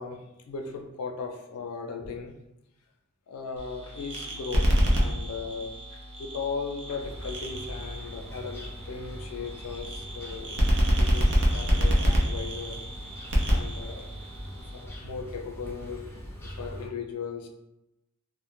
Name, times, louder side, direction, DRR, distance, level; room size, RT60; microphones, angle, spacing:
voice 1, 0.0-2.4 3.3-12.8 13.5-14.1 14.7-16.1 16.6-17.5, left 5 dB, 85° left, 3 dB, 0.4 m, -37 dB
sound 1, 3.6-14.8, equal, 55° right, 0.5 m, -27 dB
sound 2, 7.0-16.9, equal, 10° left, 0.4 m, -42 dB
2.1 x 2.0 x 2.9 m, 0.91 s
head